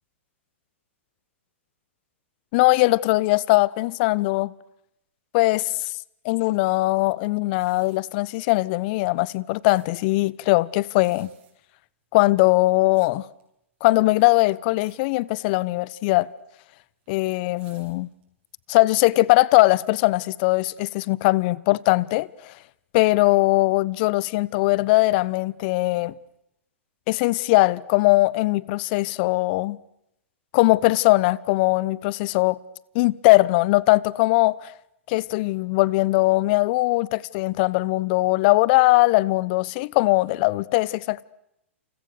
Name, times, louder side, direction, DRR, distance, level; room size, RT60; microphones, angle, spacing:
voice 1, 2.5-4.5 5.3-5.9 6.2-11.3 12.1-13.3 13.8-16.3 17.1-18.1 18.7-22.5 22.9-26.1 27.1-29.8 30.5-32.6 32.9-34.7 35.1-41.2, left 21 dB, 45° left, 1.0 m, -20 dB
sound 1, 7.4-8.1 9.0-9.9 10.8-11.5 12.3-13.5 14.0-14.3 14.7-15.0 15.2-15.5 16.4-18.5 18.9-19.0, right 11 dB, 55° right, 7.5 m, -58 dB
29.0 x 29.0 x 6.7 m
hypercardioid pair, 115°, 7 cm